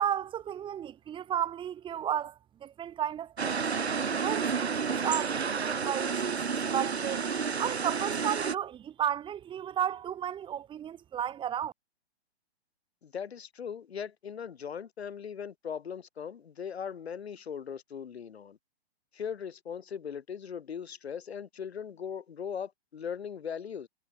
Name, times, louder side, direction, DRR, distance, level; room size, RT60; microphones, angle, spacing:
voice 1, 0.0-3.6 4.2-7.3 7.6-11.7, right 9 dB, 15° right, 1.2 m, -33 dB
sound 1, 3.4-8.6, right 5 dB, 90° right, 1.1 m, -30 dB
voice 2, 13.0-18.6 19.1-23.9, left 7 dB, 80° left, 1.0 m, -39 dB
figure-of-eight pair, 120°, 31 cm